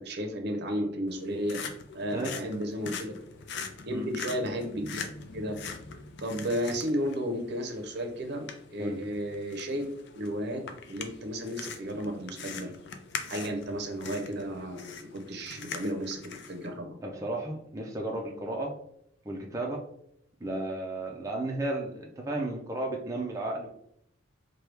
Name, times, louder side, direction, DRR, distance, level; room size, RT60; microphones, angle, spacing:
voice 1, 0.0-1.6 1.9-3.1 3.9-5.0 5.3-5.6 6.2-8.5 8.7-9.8 10.2-10.6 10.9-12.7 13.3-16.9, equal, 55° right, 3 dB, 0.7 m, -33 dB
sound 1, 1.1-16.7, left 5 dB, 60° left, 0.5 m, -43 dB
voice 2, 17.0-18.8 19.2-19.8 20.4-23.7, right 2 dB, 15° right, -1 dB, 0.5 m, -33 dB
4.6 x 2.3 x 3.3 m, 0.71 s
head